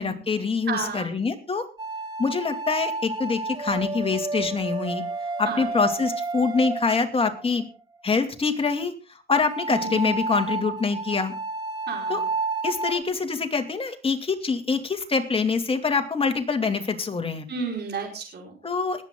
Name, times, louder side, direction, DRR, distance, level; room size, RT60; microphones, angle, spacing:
voice 1, 0.0-1.7 2.2-5.0 5.4-7.7 8.0-8.9 9.3-11.3 12.1-12.2 12.6-17.5 18.6-19.0, left 4 dB, 30° left, 5 dB, 2.5 m, -25 dB
voice 2, 0.7-1.2 5.4-5.7 9.7-10.2 11.9-12.2 17.5-18.5, right 5 dB, 60° right, 1 dB, 5.1 m, -32 dB
sound 1, 1.8-7.6 9.5-13.0, right 3 dB, 20° right, 2.0 m, -31 dB
20.5 x 8.6 x 3.9 m, 0.33 s
cardioid pair, 90°, 20 cm